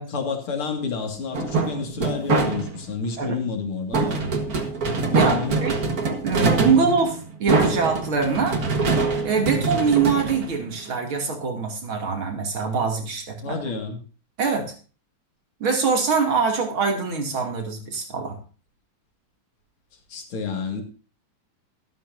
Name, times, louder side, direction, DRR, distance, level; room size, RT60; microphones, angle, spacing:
voice 1, 0.1-4.2 5.1-5.6 6.6-6.9 9.5-9.8 13.4-14.0 20.1-20.8, left 4 dB, 90° left, 5 dB, 3.0 m, -29 dB
sound 1, 1.3-2.9 3.9-11.1, right 4 dB, 45° right, 1.9 m, -24 dB
voice 2, 5.1-5.7 6.2-8.6 9.2-13.6 14.4-14.7 15.6-18.4, right 5 dB, 75° right, 3 dB, 3.4 m, -23 dB
13.0 x 12.5 x 2.6 m, 0.35 s
omnidirectional pair, 2.3 m